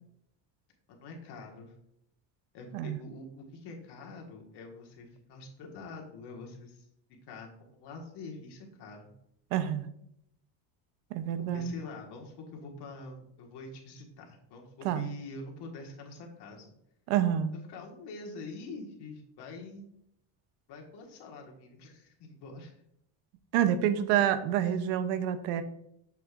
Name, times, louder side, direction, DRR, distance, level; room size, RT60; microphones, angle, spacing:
voice 1, 0.9-1.8 2.5-6.9 7.3-9.1 11.4-16.7 17.7-19.9 20.7-22.8 24.6-24.9, left 3 dB, 55° left, 0 dB, 1.8 m, -45 dB
voice 2, 9.5-9.9 11.1-11.7 14.8-15.1 17.1-17.5 23.5-25.6, right 10 dB, 80° right, 11 dB, 0.8 m, -28 dB
6.7 x 6.4 x 2.5 m, 0.75 s
supercardioid pair, 115°, 49 cm